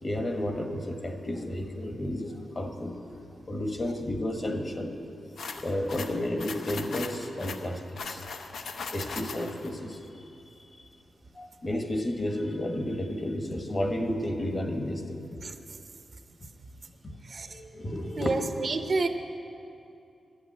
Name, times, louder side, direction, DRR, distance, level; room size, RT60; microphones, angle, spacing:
voice 1, 0.0-3.0 3.5-4.9 5.6-8.2 8.9-10.0 11.3-15.2 17.5-18.4, left 1 dB, 35° left, 4 dB, 1.2 m, -32 dB
sound 1, 5.4-9.7, left 4 dB, 85° left, 0.8 m, -39 dB
voice 2, 18.2-19.1, right 3 dB, 50° right, 7 dB, 0.7 m, -28 dB
11.5 x 8.1 x 8.8 m, 2.6 s
wide cardioid pair, 120°, 0 cm